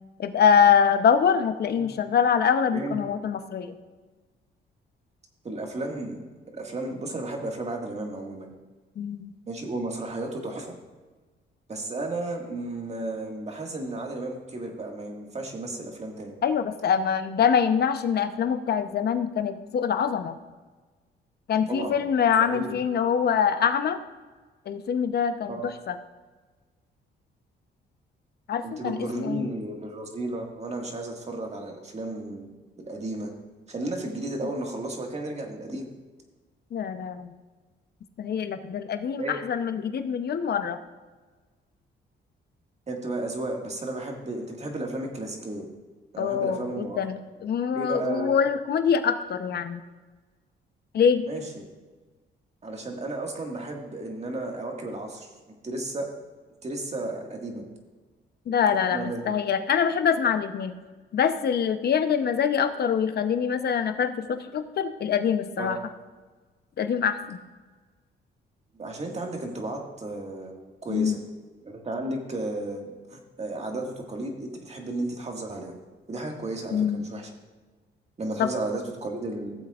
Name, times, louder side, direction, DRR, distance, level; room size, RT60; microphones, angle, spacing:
voice 1, 0.2-3.7 9.0-9.3 16.4-20.4 21.5-24.0 24.7-25.6 25.9-26.0 28.5-29.5 36.7-37.3 38.2-40.8 46.2-49.8 50.9-51.2 58.5-60.7 61.1-65.8 66.8-67.4 70.9-71.2 76.7-77.1 78.4-78.5, left 7 dB, 55° left, 9 dB, 0.8 m, -24 dB
voice 2, 5.4-6.2 6.5-8.5 9.5-10.7 11.7-16.3 21.7-22.0 22.4-22.8 25.5-25.7 28.6-33.3 33.7-35.9 39.2-39.4 42.9-45.7 46.1-47.0 47.7-48.3 51.2-51.6 52.6-55.3 55.6-56.1 56.6-57.6 58.9-59.2 65.6-65.8 68.7-71.2 71.6-75.8 76.1-77.3 78.2-79.5, right 2 dB, 35° right, 1 dB, 1.8 m, -33 dB
15.5 x 7.7 x 2.5 m, 1.3 s
cardioid pair, 90°, 20 cm